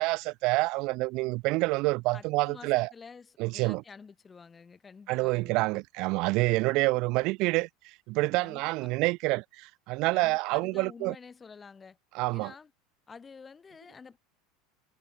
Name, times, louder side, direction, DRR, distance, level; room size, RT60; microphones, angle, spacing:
voice 1, 0.0-2.9 3.4-3.8 5.1-7.7 8.1-11.1 12.1-12.5, right 23 dB, 60° right, 0.4 m, -27 dB
voice 2, 2.1-5.8 6.5-6.8 8.4-8.9 10.1-12.0 12.3-12.7 13.1-14.2, left 5 dB, 20° left, 4.3 m, -49 dB
supercardioid pair, 110°, 0 cm